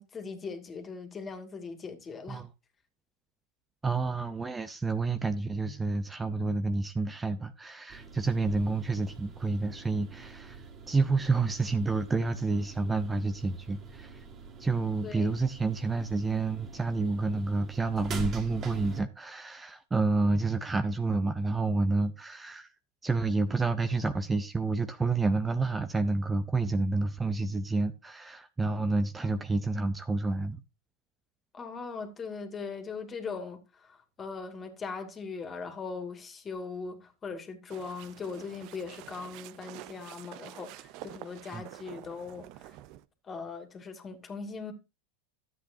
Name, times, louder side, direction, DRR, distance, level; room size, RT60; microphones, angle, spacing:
voice 1, 0.0-2.4 15.0-15.3 29.2-29.4 31.5-42.8 43.2-44.7, left 4 dB, 25° left, 2.4 m, -40 dB
voice 2, 3.8-10.6 10.9-14.2 14.6-22.7 23.0-30.6 41.5-41.6, right 3 dB, 15° right, 0.7 m, -29 dB
sound 1, 7.9-19.0, right 4 dB, 35° right, 2.4 m, -44 dB
sound 2, 37.7-43.0, right 15 dB, 50° right, 0.6 m, -48 dB
13.0 x 8.2 x 2.8 m
hypercardioid pair, 95°, 0 cm